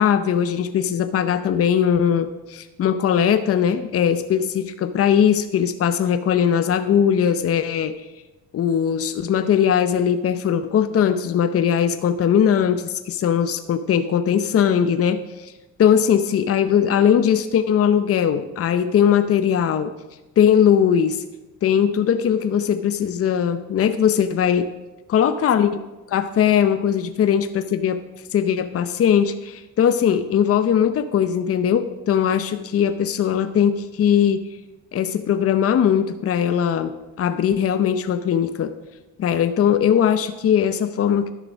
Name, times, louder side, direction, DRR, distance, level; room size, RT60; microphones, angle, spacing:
voice 1, 0.0-7.9 8.5-15.5 15.8-19.9 20.4-21.2 21.6-24.7 25.1-25.8 26.1-28.0 28.3-34.5 34.9-36.9 37.2-38.7 39.2-41.3, left 8 dB, 50° left, 10 dB, 0.7 m, -20 dB
11.5 x 6.7 x 6.2 m, 1.1 s
cardioid pair, 90°, 30 cm